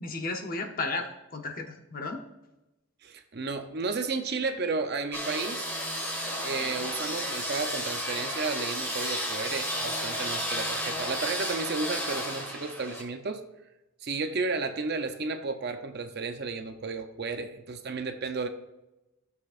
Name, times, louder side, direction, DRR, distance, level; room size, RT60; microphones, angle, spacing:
voice 1, 0.0-2.2, left 3 dB, 40° left, 4 dB, 0.8 m, -34 dB
voice 2, 3.0-5.7 6.4-13.4 14.0-18.5, right 4 dB, 45° right, 7 dB, 0.6 m, -33 dB
sound 1, 5.1-13.0, equal, 10° left, 1.6 m, -32 dB
15.0 x 6.8 x 2.5 m, 0.96 s
head